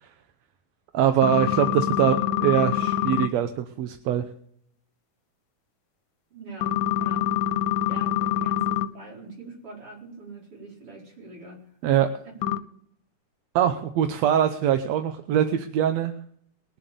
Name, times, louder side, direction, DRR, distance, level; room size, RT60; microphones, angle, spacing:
voice 1, 0.9-4.3 11.8-12.1 13.6-16.1, right 10 dB, 70° right, 8 dB, 1.9 m, -23 dB
sound 1, 1.2-3.3 6.6-8.9 12.4-12.6, left 11 dB, 80° left, 2.1 m, -25 dB
voice 2, 6.3-7.4 7.9-11.7, right 3 dB, 45° right, -2 dB, 5.4 m, -43 dB
22.0 x 7.3 x 6.9 m, 0.66 s
omnidirectional pair, 3.4 m